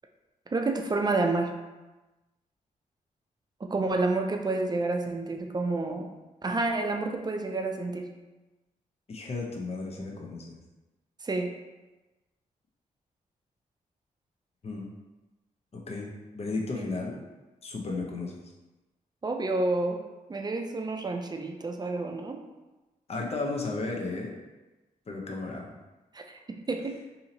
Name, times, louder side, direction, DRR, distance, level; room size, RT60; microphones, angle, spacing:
voice 1, 0.5-1.6 3.6-6.1 6.4-8.1 11.2-11.5 16.7-16.9 19.2-20.0 20.3-22.4 26.1-26.2 26.5-27.0, right 2 dB, 25° right, 4 dB, 0.5 m, -29 dB
voice 2, 9.1-10.6 14.6-14.9 15.9-16.1 16.3-17.2 17.6-18.4 23.1-24.3 25.1-25.8, left 3 dB, 45° left, 0 dB, 0.7 m, -34 dB
2.8 x 2.7 x 3.9 m, 1.1 s
cardioid pair, 60°, 15 cm